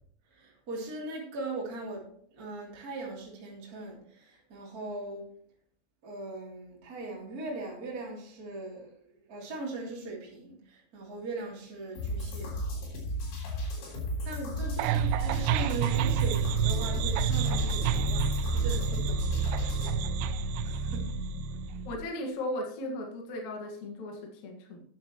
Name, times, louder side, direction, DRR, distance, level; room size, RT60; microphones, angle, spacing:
voice 1, 0.3-5.3 6.0-9.0 9.3-12.6 14.2-20.3 20.6-21.1, right 2 dB, 25° right, -3 dB, 2.9 m, -40 dB
sound 1, 12.0-20.0, left 1 dB, 80° left, 5.8 m, -34 dB
sound 2, 14.8-22.0, right 6 dB, 90° right, 2.9 m, -29 dB
voice 2, 21.8-24.8, left 1 dB, 50° left, 1 dB, 2.5 m, -36 dB
13.0 x 10.0 x 3.0 m, 0.62 s
omnidirectional pair, 5.2 m